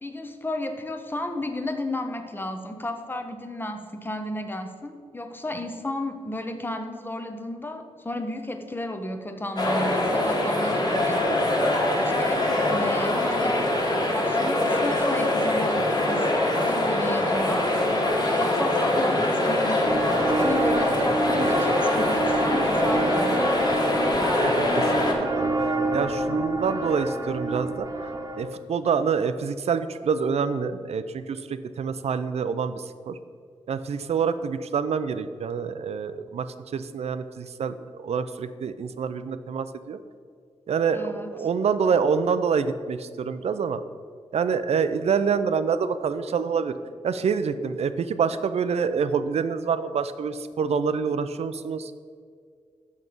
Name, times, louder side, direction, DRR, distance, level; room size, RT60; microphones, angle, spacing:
voice 1, 0.0-11.3 12.0-13.8 14.1-17.7 18.2-23.5 40.9-41.3, left 1 dB, 20° left, 7 dB, 0.8 m, -33 dB
sound 1, 9.6-25.1, left 1 dB, 35° left, 1.6 m, -23 dB
sound 2, 19.8-28.5, right 2 dB, 25° right, 0.8 m, -28 dB
voice 2, 24.4-33.2 33.7-36.5 36.7-40.0 40.7-43.8 44.3-46.8 47.0-51.9, right 6 dB, 65° right, 12 dB, 0.4 m, -27 dB
6.4 x 6.1 x 5.3 m, 2.1 s
cardioid pair, 80°, 11 cm